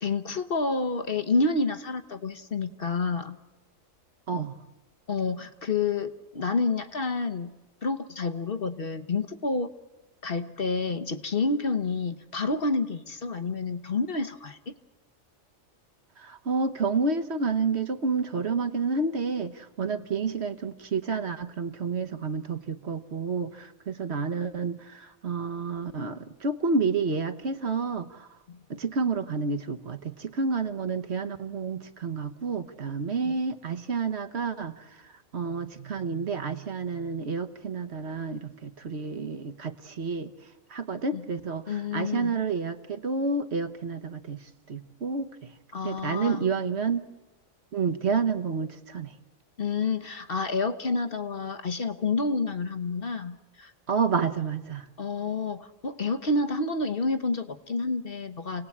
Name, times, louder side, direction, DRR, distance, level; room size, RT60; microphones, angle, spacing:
voice 1, 0.0-3.4 5.1-7.5 7.8-9.7 10.2-14.7 28.5-28.6 33.2-33.4 41.1-41.2 41.7-42.4 45.7-46.5 49.6-53.7 55.0-58.7, left 3 dB, 45° left, 8 dB, 1.2 m, -29 dB
voice 2, 16.2-28.3 28.7-34.8 35.3-40.3 40.7-44.4 44.7-45.3 45.8-47.1 47.7-49.1 53.9-54.9, right 4 dB, 55° right, 8 dB, 1.3 m, -29 dB
29.0 x 18.5 x 8.6 m, 1.1 s
omnidirectional pair, 1.4 m